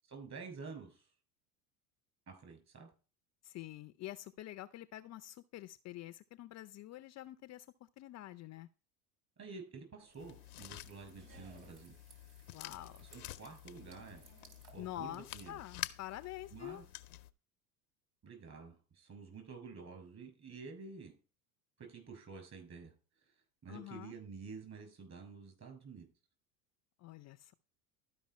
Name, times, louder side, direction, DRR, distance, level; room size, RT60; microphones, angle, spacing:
voice 1, 0.1-1.1 2.3-2.9 9.4-12.0 13.0-14.2 14.7-15.6 16.5-16.8 18.2-21.1 21.8-22.9 23.6-26.1, right 4 dB, 35° right, 4 dB, 6.2 m, -50 dB
voice 2, 3.4-8.7 12.5-13.1 14.8-16.8 23.7-24.2 27.0-27.5, left 14 dB, 40° left, 13 dB, 0.5 m, -47 dB
sound 1, 10.0-15.6, right 5 dB, 55° right, 3.2 m, -62 dB
sound 2, 10.2-17.3, left 15 dB, 90° left, 0.8 m, -49 dB
12.5 x 5.5 x 4.2 m, 0.34 s
hypercardioid pair, 95°, 44 cm